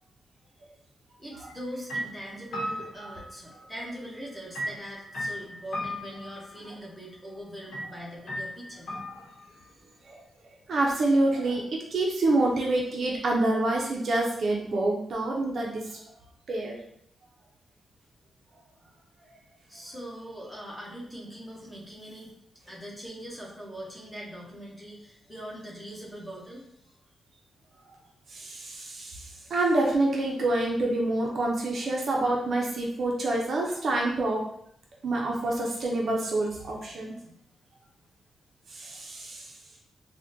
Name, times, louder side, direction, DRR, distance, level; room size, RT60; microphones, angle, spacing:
voice 1, 1.2-8.9 19.7-22.3 22.6-26.6, equal, ahead, -5 dB, 0.7 m, -41 dB
sound 1, 1.5-1.6 1.9-3.8 4.5-6.6 7.7-7.9 8.3-9.6, equal, 85° left, 0.8 m, -36 dB
voice 2, 10.7-16.0 16.5-16.8 28.3-34.4 35.0-37.2 38.7-39.5, right 2 dB, 50° right, -1 dB, 0.5 m, -27 dB
3.6 x 2.1 x 2.6 m, 0.72 s
wide cardioid pair, 175°, 0 cm